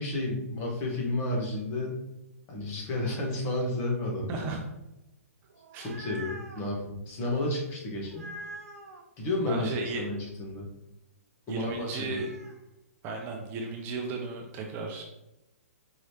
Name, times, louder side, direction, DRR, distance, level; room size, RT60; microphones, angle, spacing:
voice 1, 0.0-2.0 2.5-4.5 5.8-8.3 9.2-10.7 11.5-12.2, left 2 dB, 30° left, -1 dB, 1.3 m, -31 dB
voice 2, 4.3-4.6 5.7-5.9 9.5-10.0 11.5-12.3 13.0-15.0, right 3 dB, 25° right, 1 dB, 0.6 m, -35 dB
sound 1, 5.5-6.7 8.1-9.0 11.8-12.6, right 1 dB, 80° right, 0.8 m, -44 dB
4.8 x 3.1 x 2.9 m, 0.91 s
hypercardioid pair, 135°, 8 cm